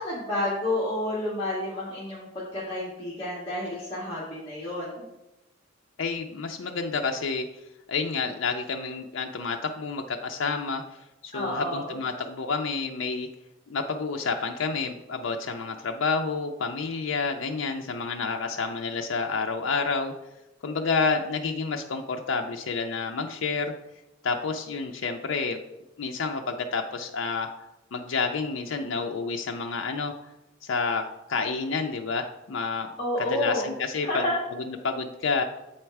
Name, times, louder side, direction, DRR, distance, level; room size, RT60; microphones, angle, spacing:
voice 1, 0.0-5.1 11.3-11.9 33.0-33.7 34.0-34.4, left 1 dB, 25° left, -8 dB, 1.7 m, -30 dB
voice 2, 6.0-7.5 7.9-10.8 11.2-13.3 13.7-20.1 20.6-23.7 24.2-25.6 26.0-27.5 27.9-30.1 30.6-31.0 31.3-32.9 33.2-34.2 34.7-35.4, left 4 dB, 70° left, 3 dB, 0.5 m, -29 dB
7.8 x 4.4 x 4.6 m, 0.95 s
head